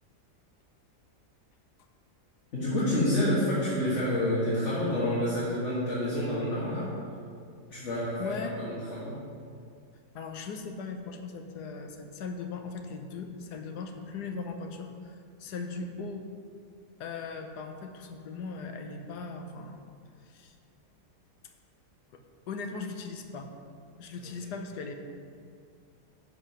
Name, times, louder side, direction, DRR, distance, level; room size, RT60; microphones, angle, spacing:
voice 1, 2.5-6.9 7.7-9.2, left 1 dB, 45° left, -9 dB, 2.0 m, -28 dB
voice 2, 8.2-8.6 10.1-16.2 17.0-19.8 20.2-20.6 22.1-22.2 22.5-23.5 23.9-24.9, left 4 dB, 75° left, 5 dB, 1.3 m, -39 dB
9.9 x 4.7 x 5.7 m, 2.2 s
omnidirectional pair, 1.8 m